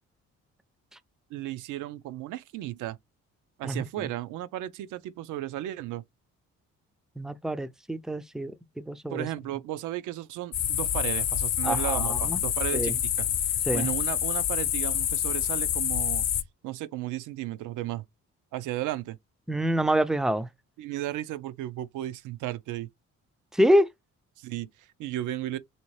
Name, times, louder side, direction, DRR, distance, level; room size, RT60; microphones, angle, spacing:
voice 1, 1.3-3.0 3.6-6.0 9.1-16.2 16.6-18.0 18.5-19.2 20.8-22.9 24.4-25.6, right 14 dB, 85° right, 0.5 m, -34 dB
voice 2, 7.2-9.3 11.6-12.4 12.7-13.0 13.7-13.9 19.5-20.5 23.5-23.9, equal, ahead, 0.3 m, -26 dB
sound 1, 10.5-16.4, left 10 dB, 55° left, 0.6 m, -27 dB
3.4 x 2.8 x 3.1 m
cardioid pair, 90°, 30 cm